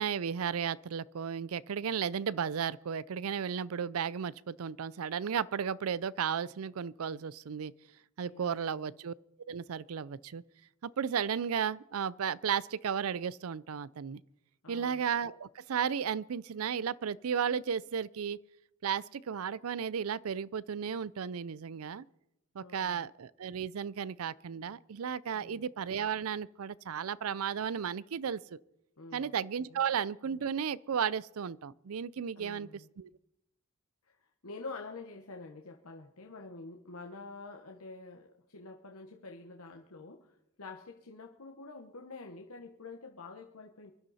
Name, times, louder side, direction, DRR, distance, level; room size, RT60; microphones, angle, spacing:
voice 1, 0.0-7.7 8.2-9.1 9.5-10.4 10.8-14.2 14.7-18.4 18.8-22.0 22.5-28.6 29.1-33.1, right 7 dB, 70° right, 0.5 m, -34 dB
voice 2, 8.2-8.8 14.6-15.0 22.6-23.1 25.3-25.7 29.0-29.3 29.7-29.8 32.3-32.9 34.4-40.3 40.6-43.9, left 3 dB, 75° left, 1.2 m, -47 dB
24.0 x 12.0 x 4.2 m
head